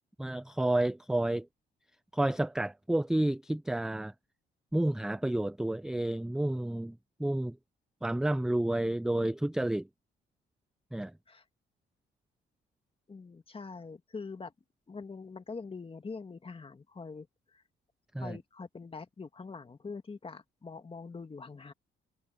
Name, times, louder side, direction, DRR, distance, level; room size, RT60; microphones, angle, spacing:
voice 1, 0.2-1.5 2.1-4.1 4.7-7.6 8.0-9.9 10.9-11.1 18.1-18.4, right 1 dB, 5° right, 0.4 m, -30 dB
voice 2, 13.1-14.5 14.9-17.3 17.5-17.6 18.2-21.7, left 4 dB, 25° left, 1.9 m, -44 dB
cardioid pair, 90°, 20 cm